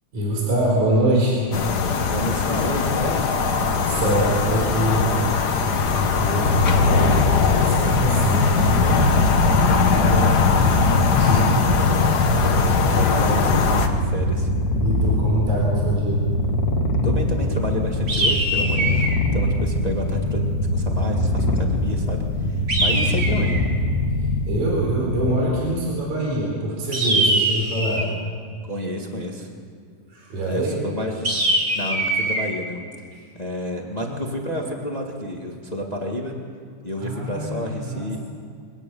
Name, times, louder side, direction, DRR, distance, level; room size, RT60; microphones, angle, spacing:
voice 1, 0.1-1.5 3.7-5.1 5.9-10.2 10.6-10.8 11.2-11.9 12.5-13.0 14.8-16.3 22.7-23.0 24.5-28.1 30.1-30.8 33.1-33.2 37.0-38.2, right 1 dB, 60° right, -2 dB, 5.6 m, -25 dB
sound 1, 1.5-13.9, left 5 dB, 75° left, 0.9 m, -21 dB
voice 2, 2.1-3.3 10.0-10.4 12.9-14.5 17.0-23.6 28.6-29.5 30.5-31.3 31.7-32.8 33.3-36.3 36.8-38.2, equal, 15° left, 1 dB, 1.3 m, -30 dB
Purr, 6.4-25.7, left 2 dB, 35° left, 1.9 m, -23 dB
sound 2, 18.1-19.2 22.7-23.7 26.9-28.2 31.2-32.5, right 2 dB, 25° right, 1.9 m, -22 dB
23.5 x 18.0 x 7.1 m, 2.2 s
omnidirectional pair, 3.8 m